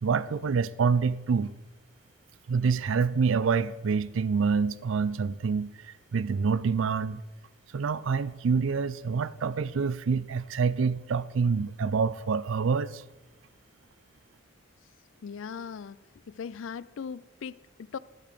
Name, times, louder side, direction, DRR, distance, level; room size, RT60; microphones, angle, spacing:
voice 1, 0.0-1.5 2.5-7.2 7.7-13.0, right 5 dB, 70° right, 0.4 m, -27 dB
voice 2, 15.2-16.0 16.3-18.0, left 6 dB, 70° left, 0.4 m, -39 dB
11.0 x 6.9 x 5.8 m
head